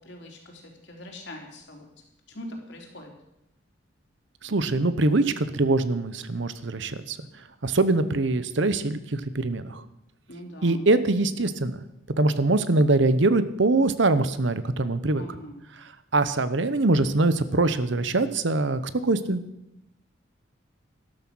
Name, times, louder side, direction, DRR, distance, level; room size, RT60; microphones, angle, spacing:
voice 1, 0.0-1.9 2.3-3.1 10.3-10.8 15.2-15.6, left 1 dB, 60° left, 1 dB, 3.5 m, -42 dB
voice 2, 4.4-7.2 7.6-9.8 10.6-11.8 12.2-15.2 15.8-19.4, right 2 dB, 65° right, 13 dB, 0.9 m, -23 dB
13.0 x 12.5 x 6.2 m, 0.85 s
head